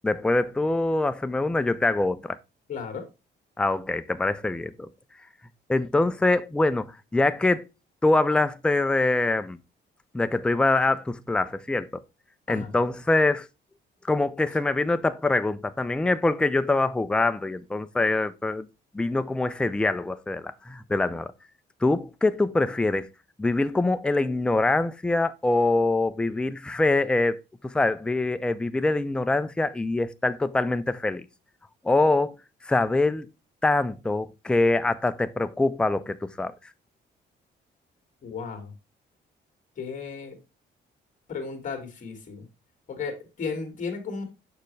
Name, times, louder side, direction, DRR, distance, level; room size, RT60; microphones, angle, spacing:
voice 1, 0.0-2.4 3.6-4.9 5.7-7.7 8.0-9.6 10.1-12.0 12.5-13.5 14.1-18.7 18.9-21.3 21.8-23.1 23.4-31.3 31.8-32.3 32.7-33.3 33.6-36.5, left 2 dB, 5° left, 0.3 m, -24 dB
voice 2, 2.7-3.1 12.5-12.8 38.2-38.7 39.8-40.4 41.3-42.5 42.9-44.2, left 5 dB, 40° left, 1.9 m, -34 dB
6.7 x 5.2 x 3.2 m
cardioid pair, 135°, 19 cm